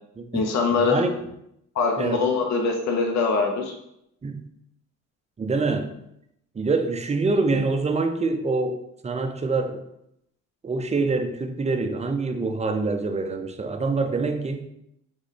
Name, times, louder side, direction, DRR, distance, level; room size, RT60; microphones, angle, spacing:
voice 1, 0.3-1.1 1.7-3.7, left 4 dB, 65° left, 2 dB, 0.8 m, -23 dB
voice 2, 0.9-1.2 2.0-2.2 4.2-4.4 5.4-5.9 6.6-9.8 10.6-14.7, right 3 dB, 20° right, 6 dB, 0.5 m, -25 dB
3.8 x 3.1 x 4.1 m, 0.78 s
cardioid pair, 90°, 30 cm